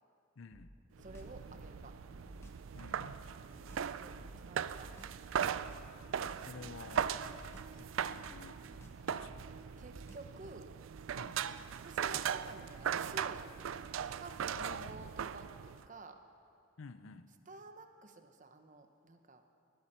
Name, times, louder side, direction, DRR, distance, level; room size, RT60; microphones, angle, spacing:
voice 1, 0.4-0.7 2.7-3.2 6.4-7.2 7.7-8.6 9.0-9.5 11.1-11.4 14.5-15.0 16.8-17.3, left 4 dB, 85° left, 12 dB, 0.6 m, -51 dB
sound 1, 0.5-2.7 3.1-5.2 5.6-7.9 8.2-10.4, equal, 15° left, 1.2 m, -56 dB
voice 2, 1.0-2.0 3.3-4.9 7.2-7.4 9.8-10.7 11.7-13.8 14.2-16.2 17.5-19.4, right 2 dB, 40° right, 7 dB, 0.9 m, -52 dB
sound 2, 1.0-15.9, right 8 dB, 80° right, 0.4 m, -39 dB
20.0 x 12.5 x 4.4 m, 2.8 s
head